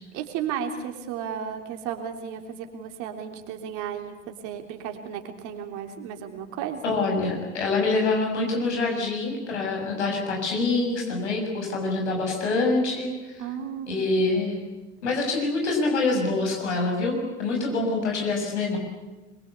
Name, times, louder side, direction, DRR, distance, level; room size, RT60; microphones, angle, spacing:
voice 1, 0.1-6.8 13.4-14.1, right 8 dB, 55° right, 5 dB, 3.5 m, -34 dB
voice 2, 6.8-13.1 13.9-14.6 15.0-18.8, left 3 dB, 75° left, 1 dB, 6.5 m, -25 dB
25.5 x 22.5 x 8.3 m, 1.1 s
figure-of-eight pair, 65°, 35 cm